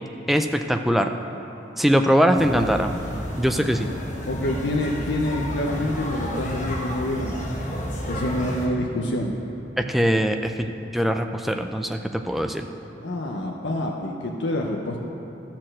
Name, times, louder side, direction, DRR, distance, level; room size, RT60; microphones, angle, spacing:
voice 1, 0.3-1.1 1.8-2.9 3.4-3.9 9.8-12.7, equal, ahead, 5 dB, 0.3 m, -22 dB
sound 1, 2.3-8.7, equal, 40° left, 1.2 m, -31 dB
voice 2, 4.3-7.4 8.1-9.3 13.0-15.0, left 1 dB, 75° left, 0 dB, 0.7 m, -27 dB
12.5 x 4.3 x 7.6 m, 3.0 s
head